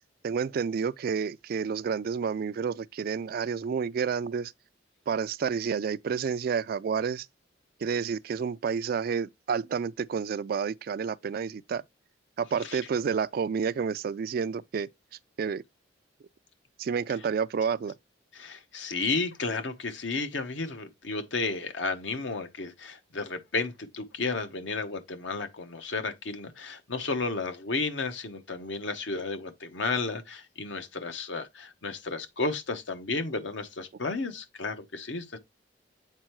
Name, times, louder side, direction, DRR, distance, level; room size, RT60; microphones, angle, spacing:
voice 1, 0.2-4.5 5.1-7.3 7.8-11.8 12.4-14.9 15.4-15.6 16.8-17.9, right 6 dB, 50° right, 0.3 m, -30 dB
voice 2, 18.3-35.4, left 3 dB, 75° left, 1.0 m, -33 dB
7.5 x 4.4 x 3.1 m
head